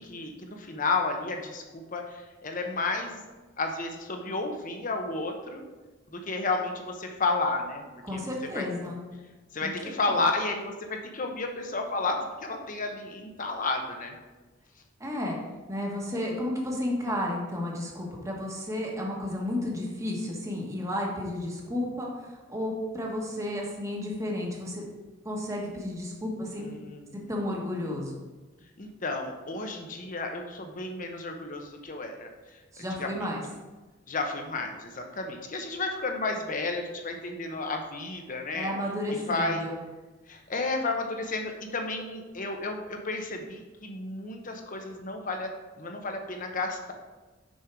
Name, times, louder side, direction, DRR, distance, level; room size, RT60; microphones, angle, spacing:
voice 1, 0.0-3.2 3.6-5.6 6.1-7.8 8.1-8.2 8.5-8.7 9.5-14.2 26.5-27.3 28.8-32.3 33.0-33.1 34.1-38.7 39.3-39.7 40.3-45.5 45.8-46.9, left 3 dB, 45° left, 3 dB, 0.9 m, -32 dB
voice 2, 8.0-9.0 9.6-9.7 10.1-10.2 15.0-15.4 15.7-24.8 25.2-26.7 27.3-28.2 32.7-33.4 38.5-39.8, left 1 dB, 15° right, -1 dB, 1.3 m, -32 dB
6.4 x 5.5 x 4.6 m, 1.2 s
head